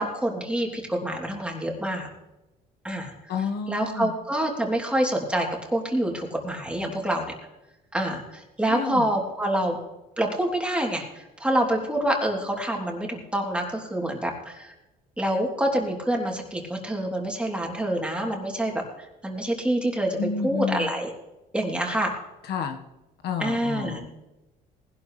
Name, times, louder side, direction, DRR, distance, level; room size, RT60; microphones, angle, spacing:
voice 1, 0.0-2.1 2.8-3.1 3.7-7.3 7.9-9.8 10.2-14.7 15.2-21.1 21.5-22.1 23.4-24.0, right 1 dB, 5° right, 0 dB, 3.2 m, -27 dB
voice 2, 3.3-4.1 8.7-9.1 20.2-20.9 22.5-22.8 23.2-24.2, left 6 dB, 75° left, 5 dB, 1.5 m, -30 dB
19.5 x 11.5 x 3.3 m, 0.97 s
cardioid pair, 110°, 17 cm